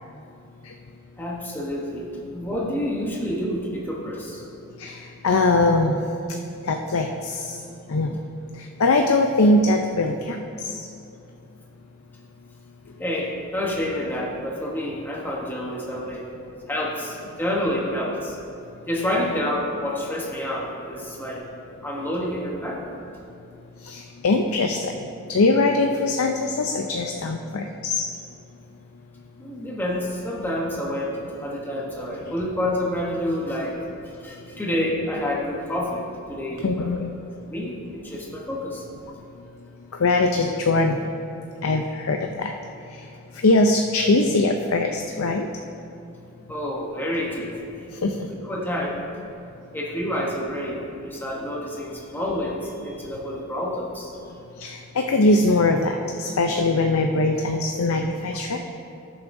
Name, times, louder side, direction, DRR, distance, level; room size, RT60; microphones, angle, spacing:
voice 1, 1.2-2.1 2.3-4.4 13.0-16.2 16.7-18.4 18.9-21.4 21.8-22.9 29.4-33.8 34.2-36.0 36.3-37.0 37.5-38.8 46.5-47.7 48.4-49.0 49.7-54.1, left 1 dB, 10° left, -3 dB, 1.0 m, -28 dB
voice 2, 5.2-6.0 6.7-7.4 7.9-8.1 8.8-10.4 10.8-10.9 23.9-24.9 25.3-28.0 36.6-37.1 40.0-41.0 41.6-42.5 43.4-45.5 48.0-48.3 54.6-58.6, left 2 dB, 85° left, 4 dB, 0.5 m, -21 dB
17.5 x 7.1 x 2.6 m, 2.7 s
head